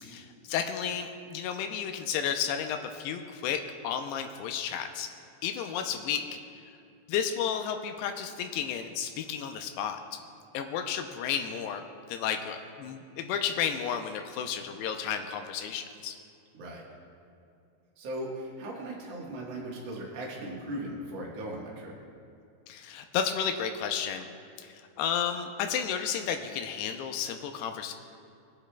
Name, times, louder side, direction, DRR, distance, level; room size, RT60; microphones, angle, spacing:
voice 1, 0.0-5.1 5.4-6.2 7.1-10.0 10.5-11.8 12.1-16.2 22.7-24.3 24.6-27.9, left 8 dB, 85° left, 6 dB, 2.5 m, -32 dB
voice 2, 18.0-21.9, right 1 dB, 65° right, -4 dB, 1.6 m, -38 dB
21.5 x 9.6 x 2.2 m, 2.4 s
omnidirectional pair, 5.1 m